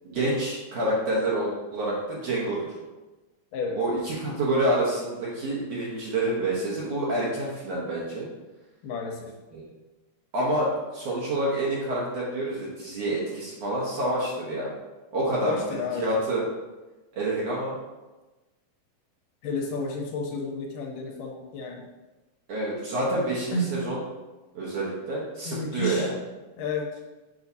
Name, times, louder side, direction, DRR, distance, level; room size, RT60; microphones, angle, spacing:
voice 1, 0.0-2.7 3.8-8.3 9.5-9.6 10.3-14.7 15.1-16.4 17.1-17.8 22.5-24.0 24.6-26.1, right 1 dB, 60° right, -5 dB, 1.9 m, -28 dB
voice 2, 8.8-9.3 15.3-16.2 19.4-21.8 23.5-23.7 25.5-26.1 26.6-26.9, left 2 dB, 75° left, 0 dB, 2.3 m, -31 dB
7.2 x 5.5 x 2.7 m, 1.1 s
omnidirectional pair, 4.0 m